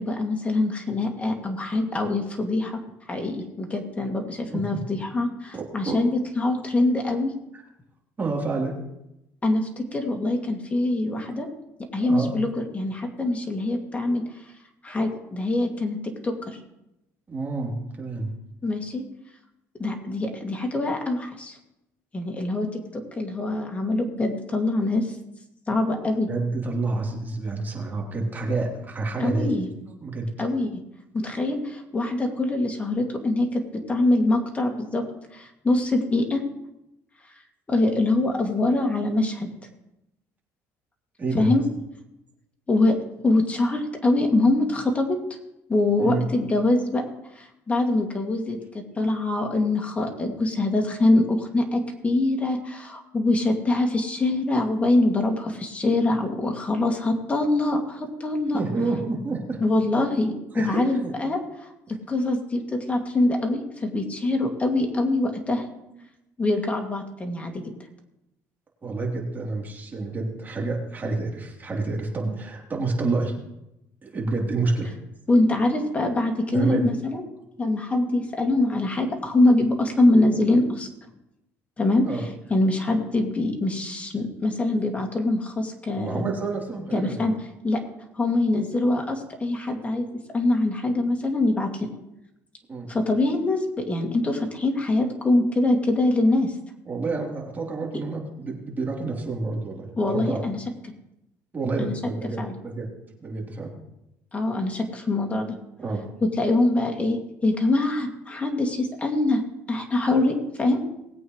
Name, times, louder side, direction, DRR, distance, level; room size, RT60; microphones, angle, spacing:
voice 1, 0.0-2.8 3.1-7.3 9.4-11.5 11.9-14.2 14.8-16.6 18.6-19.0 19.8-21.6 22.1-25.1 25.7-26.3 29.2-29.7 30.4-30.8 31.1-35.0 35.3-36.4 37.7-39.5 41.3-41.6 42.7-43.0 43.2-45.2 45.7-47.0 47.3-58.6 59.6-65.6 66.4-67.6 75.3-77.2 77.6-80.9 81.8-86.3 86.9-87.3 87.6-87.8 88.2-90.1 90.3-91.9 92.9-96.5 100.0-100.6 101.8-101.9 102.4-102.5 104.3-105.6 106.2-109.4 109.7-110.9, left 2 dB, 20° left, 3 dB, 2.4 m, -24 dB
voice 2, 5.5-6.0 7.5-7.6 8.2-8.7 12.0-12.3 17.3-18.3 26.3-29.6 29.9-30.3 41.2-41.5 46.0-46.3 58.5-59.6 59.9-60.1 60.5-61.1 66.0-66.1 68.8-73.3 74.0-74.9 76.5-76.9 82.0-82.2 85.9-87.3 92.7-92.9 96.9-100.4 101.5-102.9 103.2-103.7 105.8-106.0, right 3 dB, 25° right, -1 dB, 3.4 m, -28 dB
20.0 x 8.5 x 3.2 m, 0.87 s
cardioid pair, 105°, 7 cm